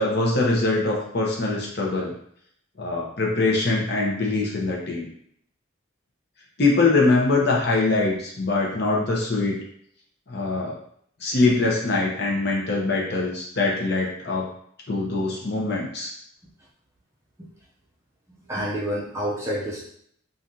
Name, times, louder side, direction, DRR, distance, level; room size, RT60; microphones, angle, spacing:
voice 1, 0.0-2.1 2.8-5.1 6.6-9.6 10.3-10.8 11.2-14.5 14.9-16.1, left 3 dB, 50° left, -2 dB, 0.8 m, -23 dB
voice 2, 18.5-19.9, equal, 15° right, -6 dB, 0.5 m, -28 dB
3.2 x 2.6 x 2.7 m, 0.67 s
head